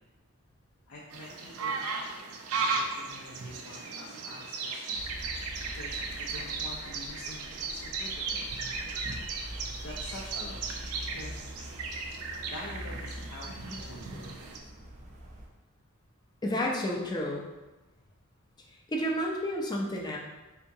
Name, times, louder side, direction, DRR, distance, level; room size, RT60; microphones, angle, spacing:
voice 1, 0.9-2.1 2.5-5.4 5.7-8.4 9.8-11.4 12.5-14.4, left 1 dB, 75° left, -5 dB, 0.5 m, -46 dB
sound 1, 1.1-14.6, right 4 dB, 90° right, 0.4 m, -36 dB
sound 2, 4.9-15.5, equal, 35° right, 0.5 m, -44 dB
voice 2, 16.4-17.4 18.9-20.2, equal, 20° left, -1 dB, 0.4 m, -30 dB
3.4 x 2.8 x 2.7 m, 1.1 s
head